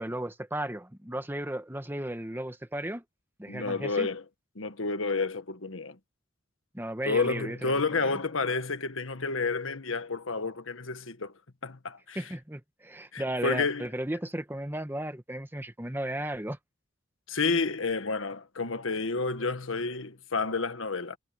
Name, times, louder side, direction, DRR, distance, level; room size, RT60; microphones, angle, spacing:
voice 1, 0.0-3.0 3.4-4.1 6.7-8.1 12.1-16.6, right 1 dB, 10° right, 1.3 m, -35 dB
voice 2, 3.5-4.2 4.6-6.0 7.0-11.3 11.6-12.2 13.1-13.9 17.3-21.2, left 4 dB, 80° left, 1.5 m, -30 dB
head